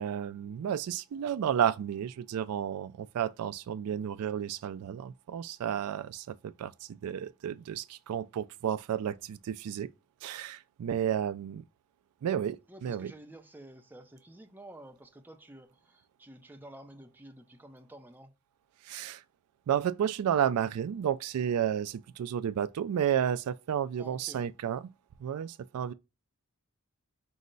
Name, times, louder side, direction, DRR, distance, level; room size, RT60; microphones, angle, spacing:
voice 1, 0.0-9.9 10.2-11.6 12.2-13.1 18.8-19.2 19.7-24.8 25.2-25.9, right 9 dB, 75° right, 0.3 m, -32 dB
voice 2, 12.7-18.3 24.0-24.4, right 1 dB, 10° right, 0.5 m, -51 dB
5.4 x 2.1 x 3.7 m
head